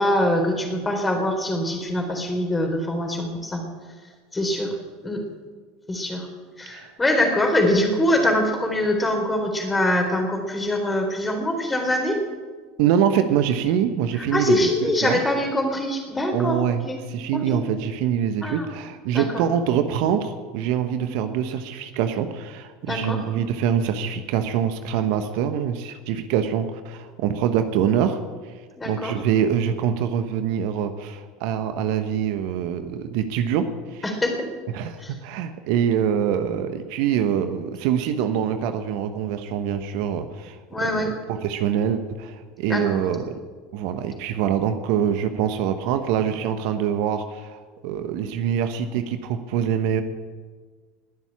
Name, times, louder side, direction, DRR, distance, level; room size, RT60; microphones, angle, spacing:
voice 1, 0.0-3.6 4.3-4.7 5.0-5.2 5.9-6.3 6.6-12.2 14.3-17.0 17.3-17.6 18.4-18.7 19.1-19.3 22.8-23.2 28.8-29.2 34.0-34.5 35.0-35.1 40.7-41.1 42.7-43.0, left 1 dB, 15° left, 3 dB, 4.0 m, -23 dB
voice 2, 12.8-15.2 16.3-28.2 28.8-34.0 34.7-41.0 41.3-43.4 43.7-50.0, right 9 dB, 60° right, 9 dB, 1.2 m, -24 dB
20.5 x 7.3 x 8.6 m, 1.5 s
hypercardioid pair, 80°, 0 cm